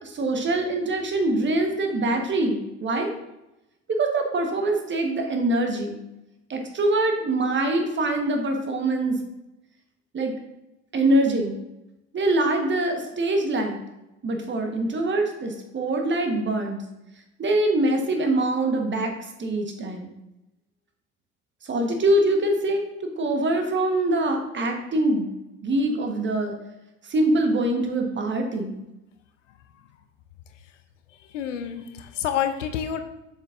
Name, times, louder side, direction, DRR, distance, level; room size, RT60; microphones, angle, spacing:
voice 1, 0.0-3.1 3.9-6.0 6.5-9.2 10.1-10.3 10.9-11.6 12.1-13.8 14.2-16.8 17.4-19.1 19.4-20.1 21.6-25.3 25.6-26.5 27.1-28.8, right 2 dB, 30° right, 3 dB, 1.3 m, -24 dB
voice 2, 31.3-33.0, left 9 dB, 75° left, 9 dB, 0.6 m, -28 dB
7.4 x 5.4 x 2.6 m, 0.92 s
figure-of-eight pair, 60°, 37 cm